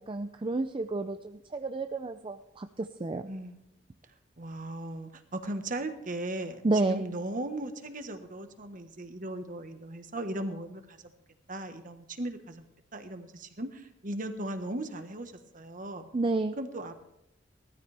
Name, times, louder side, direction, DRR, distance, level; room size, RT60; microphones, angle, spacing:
voice 1, 0.0-3.3 6.6-7.0 16.1-16.6, right 2 dB, 25° right, 7 dB, 0.5 m, -30 dB
voice 2, 3.3-3.6 4.4-11.0 11.5-12.6 12.9-16.0 16.6-17.0, right 1 dB, 45° right, 7 dB, 1.3 m, -37 dB
18.5 x 13.5 x 3.4 m, 0.82 s
head